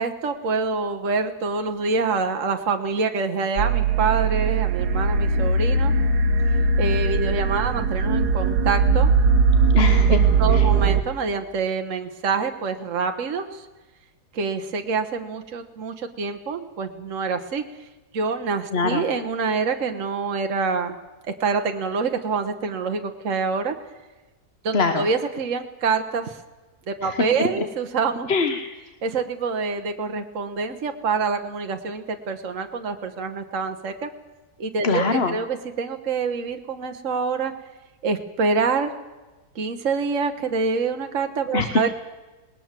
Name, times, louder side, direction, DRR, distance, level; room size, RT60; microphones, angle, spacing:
voice 1, 0.0-5.9 6.8-9.1 10.1-13.7 14.3-17.6 18.1-20.9 21.4-23.7 24.6-26.4 26.9-28.3 29.0-34.1 34.6-37.5 38.0-38.9 39.5-41.9, right 4 dB, 55° right, 5 dB, 1.5 m, -26 dB
sound 1, 3.6-11.0, right 4 dB, 75° right, 1.6 m, -20 dB
voice 2, 9.7-10.2 10.5-10.6 18.7-19.0 24.7-25.0 27.0-27.1 28.3-28.7 34.8-35.3 41.5-41.7, left 4 dB, 45° left, 8 dB, 1.3 m, -23 dB
20.0 x 19.5 x 7.5 m, 1.2 s
omnidirectional pair, 1.7 m